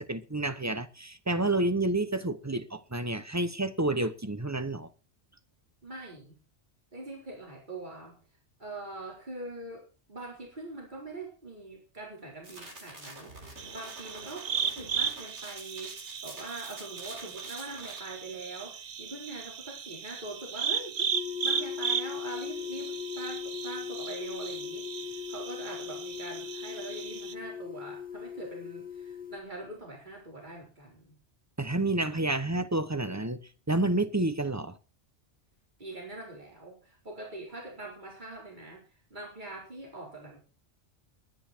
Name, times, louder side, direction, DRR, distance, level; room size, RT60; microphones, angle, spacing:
voice 1, 0.0-4.9 31.6-33.4 33.7-34.8, right 2 dB, 15° right, 0.9 m, -29 dB
voice 2, 5.8-6.4 6.9-8.2 8.6-21.1 21.4-31.2 35.8-40.4, right 2 dB, 45° right, 4.5 m, -43 dB
sound 1, 12.4-18.0, right 2 dB, 80° right, 4.0 m, -47 dB
sound 2, 13.6-27.3, right 7 dB, 60° right, 1.1 m, -36 dB
sound 3, 21.1-29.4, left 8 dB, 5° left, 1.8 m, -39 dB
20.5 x 10.5 x 4.4 m
omnidirectional pair, 1.2 m